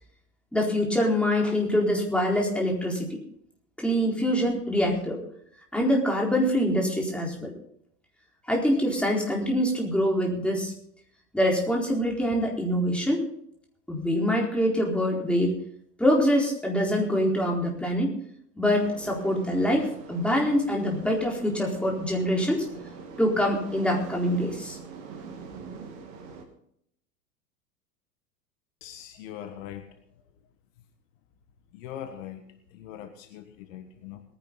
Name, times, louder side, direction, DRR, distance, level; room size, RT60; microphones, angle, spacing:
voice 1, 0.5-3.2 3.8-5.2 5.7-7.5 8.5-10.7 11.3-13.2 13.9-15.6 16.0-18.1 18.6-22.7 23.2-24.8, equal, ahead, -2 dB, 4.2 m, -25 dB
sound 1, 18.6-26.4, right 5 dB, 55° right, 2.9 m, -43 dB
voice 2, 28.8-29.9 31.7-32.4 32.7-34.2, left 10 dB, 55° left, 8 dB, 1.5 m, -41 dB
21.5 x 10.5 x 4.0 m, 0.70 s
figure-of-eight pair, 90°, 48 cm